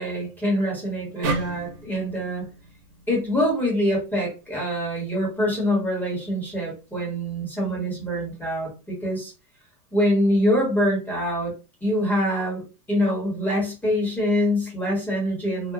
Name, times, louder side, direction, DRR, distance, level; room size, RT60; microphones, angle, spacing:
voice 1, 0.0-2.4 3.1-9.3 9.9-11.5 11.8-15.7, equal, 5° left, -5 dB, 1.2 m, -24 dB
sound 1, 1.2-4.5, right 3 dB, 80° right, 1.4 m, -33 dB
2.9 x 2.4 x 2.4 m, 0.32 s
supercardioid pair, 140°, 50 cm